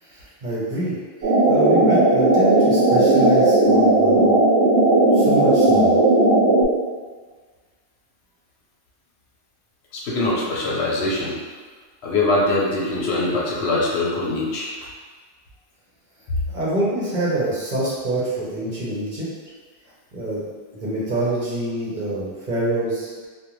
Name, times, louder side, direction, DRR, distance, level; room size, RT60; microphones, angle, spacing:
voice 1, 0.1-0.9 1.5-4.3 5.1-6.0 16.5-19.3 20.1-20.4 20.7-23.3, right 1 dB, 50° right, -8 dB, 0.8 m, -25 dB
sound 1, 1.2-6.6, right 2 dB, 85° right, 1.1 m, -16 dB
voice 2, 9.9-11.4 12.0-14.7, left 2 dB, 80° left, -5 dB, 0.9 m, -22 dB
2.4 x 2.1 x 3.0 m, 1.5 s
omnidirectional pair, 1.1 m